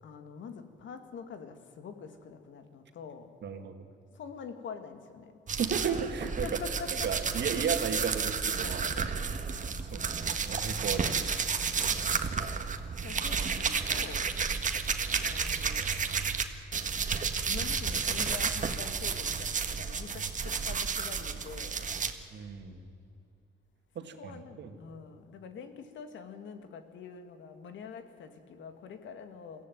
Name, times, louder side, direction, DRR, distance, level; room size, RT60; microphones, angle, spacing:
voice 1, 0.0-3.3 4.1-5.4 6.2-7.1 8.6-9.0 11.7-12.0 13.0-14.3 15.3-16.3 17.5-21.9 24.0-29.7, left 6 dB, 70° left, 8 dB, 2.1 m, -45 dB
voice 2, 3.4-3.8 5.6-6.5 7.0-8.8 9.9-11.3 22.3-22.9 24.0-24.7, right 6 dB, 60° right, 6 dB, 2.2 m, -34 dB
sound 1, 5.5-16.4 16.7-22.1, right 5 dB, 40° right, 1.6 m, -31 dB
22.5 x 16.0 x 9.4 m, 2.6 s
cardioid pair, 90°, 20 cm